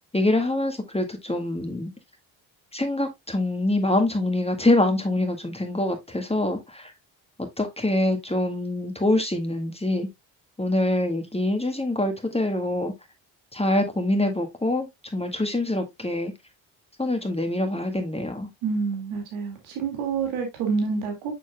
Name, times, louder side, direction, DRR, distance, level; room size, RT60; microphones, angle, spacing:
voice 1, 0.1-1.9 2.7-6.9 7.4-10.1 10.6-12.9 13.5-14.9 15.1-16.3 17.0-18.5, left 1 dB, 15° left, 1.7 m, -25 dB
voice 2, 18.6-21.3, right 5 dB, 90° right, 2.2 m, -27 dB
7.0 x 6.1 x 2.2 m
supercardioid pair, 55°, 47 cm